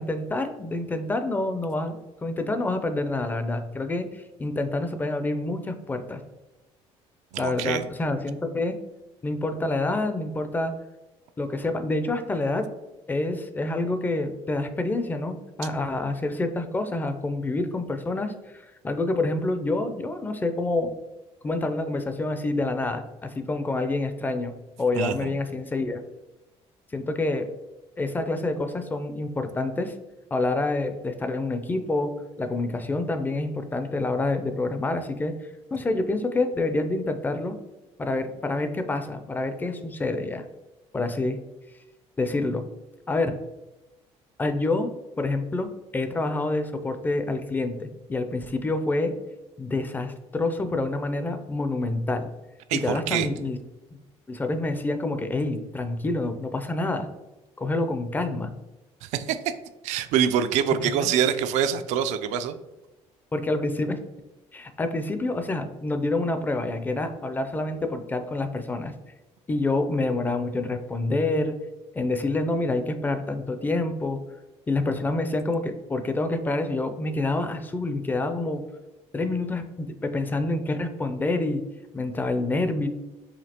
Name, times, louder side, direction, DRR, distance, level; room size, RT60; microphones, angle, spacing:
voice 1, 0.0-6.2 7.4-8.8 9.2-10.7 11.4-12.7 13.1-18.3 18.8-20.9 21.4-26.0 26.9-27.5 28.0-29.9 30.3-32.1 32.4-35.3 35.7-37.6 38.0-40.4 40.9-41.4 42.2-42.6 43.1-43.4 44.4-44.9 45.2-45.7 45.9-49.1 49.6-52.3 52.7-53.6 54.3-57.1 57.6-58.5 60.8-61.1 63.3-64.0 64.5-68.9 69.5-71.6 71.9-74.2 74.7-78.6 79.1-81.6 81.9-82.9, left 2 dB, 15° left, 8 dB, 0.4 m, -27 dB
voice 2, 7.3-7.8 25.0-25.3 52.7-53.3 59.0-59.4 59.8-62.6, right 8 dB, 85° right, 10 dB, 0.4 m, -25 dB
5.0 x 2.8 x 2.8 m, 1.0 s
cardioid pair, 130°, 12 cm